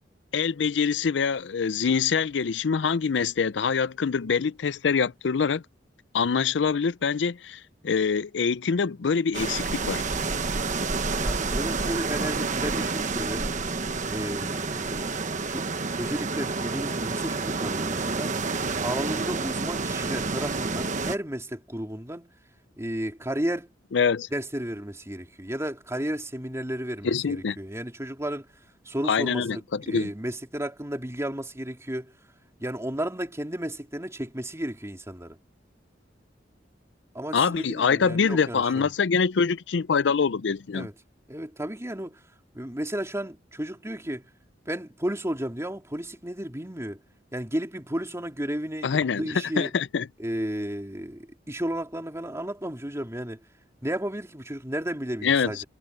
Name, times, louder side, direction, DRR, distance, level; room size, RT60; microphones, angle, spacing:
voice 1, 0.3-5.6 6.1-10.0 23.9-24.3 27.0-27.6 29.1-30.1 37.3-40.9 48.8-50.1 55.2-55.6, left 6 dB, 75° left, 0.5 m, -25 dB
sound 1, 9.3-21.2, right 4 dB, 45° right, 1.2 m, -29 dB
voice 2, 11.1-13.5 14.1-15.2 15.5-18.3 18.8-22.3 22.8-23.7 24.3-28.5 28.8-32.1 32.6-35.4 37.1-38.9 40.7-40.9 41.3-42.2 42.5-44.3 44.6-47.0 47.3-49.7 50.2-53.4 53.8-55.6, right 1 dB, 15° right, 3.3 m, -33 dB
head